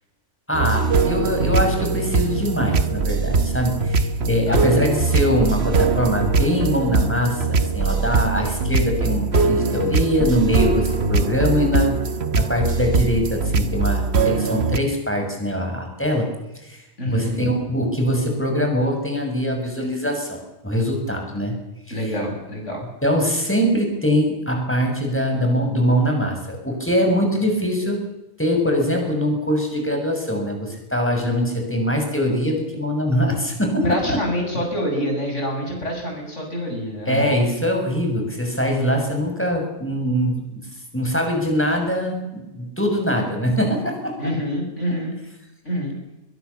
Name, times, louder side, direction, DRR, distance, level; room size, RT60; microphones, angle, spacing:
voice 1, 0.5-12.0 12.3-16.3 16.6-20.4 20.6-21.5 21.9-22.0 23.0-28.0 28.4-34.2 37.0-40.6 40.9-44.3, equal, 10° left, 2 dB, 6.9 m, -22 dB
sound 1, 0.5-14.8, right 4 dB, 60° right, 1.5 m, -21 dB
voice 2, 4.5-4.9 17.0-17.4 21.9-22.8 33.8-37.4 44.2-45.2 45.6-46.0, equal, 80° left, 2 dB, 8.2 m, -26 dB
22.5 x 22.0 x 7.1 m, 0.95 s
omnidirectional pair, 1.2 m